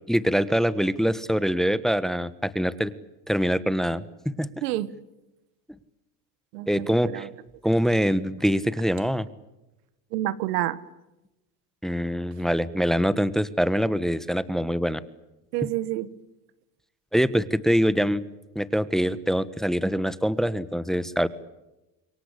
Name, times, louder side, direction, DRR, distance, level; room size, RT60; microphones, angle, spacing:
voice 1, 0.1-2.9 3.3-4.5 6.7-7.3 7.6-9.3 11.8-15.0 17.1-18.2 18.5-21.3, equal, ahead, 16 dB, 1.3 m, -24 dB
voice 2, 4.6-4.9 6.5-7.3 10.1-10.8 15.5-16.1, right 14 dB, 85° right, 17 dB, 1.6 m, -28 dB
27.5 x 23.5 x 8.5 m, 0.97 s
supercardioid pair, 100°, 47 cm